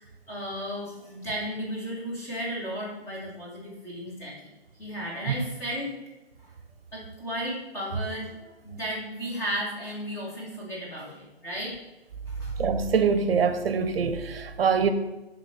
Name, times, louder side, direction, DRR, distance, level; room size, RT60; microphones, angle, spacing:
voice 1, 0.0-4.3 4.8-5.9 6.4-6.5 6.9-11.7 12.3-12.5, equal, 10° left, 1.6 m, -34 dB
voice 2, 12.6-14.9, right 6 dB, 65° right, 0.8 m, -24 dB
5.6 x 3.7 x 5.7 m
hypercardioid pair, 150°, 31 cm